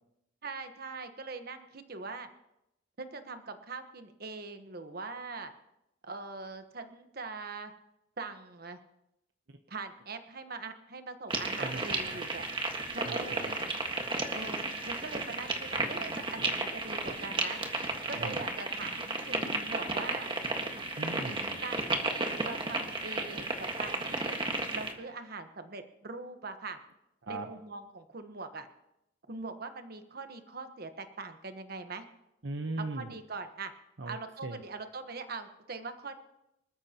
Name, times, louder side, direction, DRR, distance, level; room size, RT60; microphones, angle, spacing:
voice 1, 0.4-2.3 3.0-5.5 6.0-7.7 8.2-8.8 9.7-12.4 12.9-13.6 14.3-17.6 18.1-20.3 21.6-24.4 24.7-26.8 27.3-28.7 29.3-32.0 32.9-33.7 34.1-36.1, right 3 dB, 55° right, 7 dB, 1.2 m, -42 dB
sound 1, 11.3-24.9, right 2 dB, 25° right, 1.6 m, -33 dB
voice 2, 11.6-12.2 13.1-13.4 18.2-18.4 21.0-21.6 27.2-27.5 32.4-33.1 34.0-34.2 34.4-34.6, right 2 dB, 75° right, 6 dB, 0.9 m, -38 dB
25.5 x 13.5 x 3.0 m, 0.84 s
head